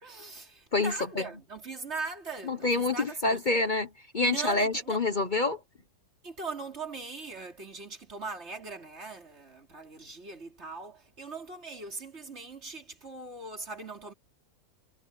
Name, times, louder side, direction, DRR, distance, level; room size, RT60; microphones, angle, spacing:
voice 1, 0.0-3.4 4.2-5.0 6.2-14.1, right 4 dB, 45° right, 3.5 m, -40 dB
voice 2, 0.7-1.2 2.5-5.6, left 3 dB, 35° left, 1.0 m, -27 dB
omnidirectional pair, 1.6 m